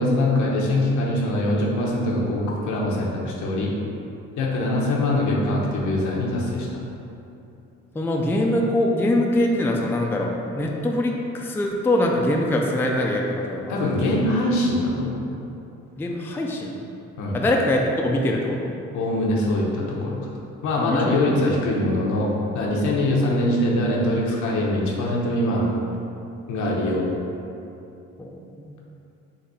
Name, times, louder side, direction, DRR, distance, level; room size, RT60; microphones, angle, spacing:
voice 1, 0.0-3.7 4.4-6.8 13.7-15.3 17.2-17.4 18.9-20.2 20.6-25.7 26.5-27.1, left 1 dB, 75° left, -3 dB, 0.8 m, -23 dB
voice 2, 7.9-13.8 16.0-16.7 17.3-18.7 20.8-21.2 23.0-23.1 28.2-28.8, left 1 dB, 10° left, 0 dB, 0.3 m, -23 dB
4.0 x 2.6 x 4.0 m, 2.7 s
cardioid pair, 90°, 30 cm